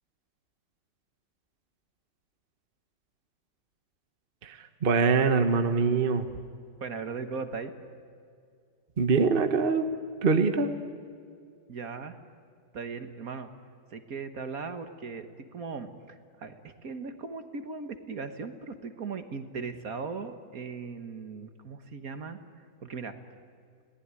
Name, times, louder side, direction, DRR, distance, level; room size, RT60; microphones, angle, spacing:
voice 1, 4.4-6.2 9.0-9.9 10.2-10.7, right 4 dB, 35° right, 8 dB, 1.2 m, -24 dB
voice 2, 6.8-7.7 11.7-12.2 12.7-13.5 13.9-15.3 15.5-22.4 22.8-23.1, right 5 dB, 55° right, 9 dB, 1.8 m, -38 dB
30.0 x 19.0 x 9.8 m, 2.3 s
omnidirectional pair, 1.9 m